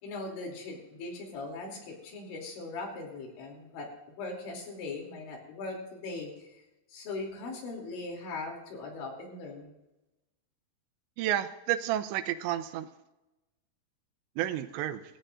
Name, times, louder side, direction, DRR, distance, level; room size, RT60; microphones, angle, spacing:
voice 1, 0.0-3.9 4.2-6.6 6.9-9.7, left 3 dB, 90° left, 0 dB, 5.4 m, -40 dB
voice 2, 11.2-12.9 14.4-15.0, right 12 dB, 90° right, 10 dB, 3.0 m, -31 dB
26.0 x 15.0 x 2.6 m, 0.99 s
omnidirectional pair, 5.2 m